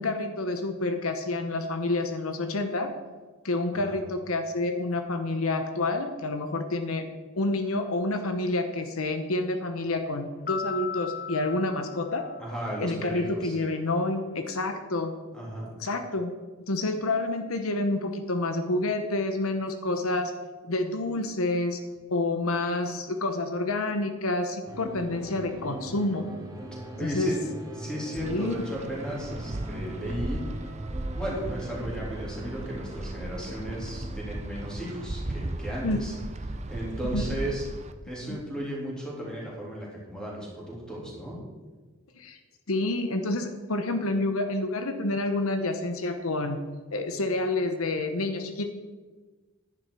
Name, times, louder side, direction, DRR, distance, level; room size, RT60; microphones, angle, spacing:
voice 1, 0.0-2.9 3.4-7.1 7.4-12.2 12.8-15.2 15.8-16.3 16.7-20.3 20.6-21.8 22.1-26.3 27.0-27.3 28.2-28.6 35.8-36.0 37.1-37.4 38.3-38.4 42.2-42.4 42.7-46.6 46.9-48.7, left 2 dB, 75° left, 7 dB, 0.9 m, -28 dB
sound 1, 10.5-13.0, left 7 dB, 45° left, 0.8 m, -37 dB
voice 2, 12.4-13.6 15.3-15.7 27.0-27.4 27.8-30.4 31.1-36.1 36.7-37.6 38.0-41.4, equal, 5° left, -5 dB, 3.3 m, -35 dB
sound 2, 24.7-38.3, right 1 dB, 15° right, 1.6 m, -42 dB
Wind, 28.2-37.9, right 1 dB, 30° right, 0.6 m, -36 dB
11.0 x 10.0 x 4.8 m, 1.3 s
head